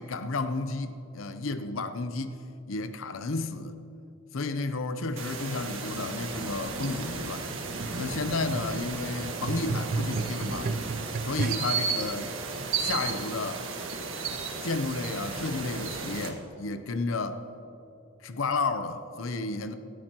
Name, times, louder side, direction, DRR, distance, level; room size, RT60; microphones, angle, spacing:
voice 1, 0.0-2.4 2.7-3.8 4.3-7.5 8.0-10.8 11.2-12.3 12.8-13.6 14.6-17.4 18.2-19.7, left 3 dB, 80° left, 10 dB, 0.7 m, -32 dB
sound 1, 5.2-16.3, right 4 dB, 75° right, 1.6 m, -34 dB
sound 2, 7.5-11.9 12.7-12.8, right 4 dB, 45° right, 0.3 m, -34 dB
18.5 x 13.5 x 3.0 m, 2.9 s
head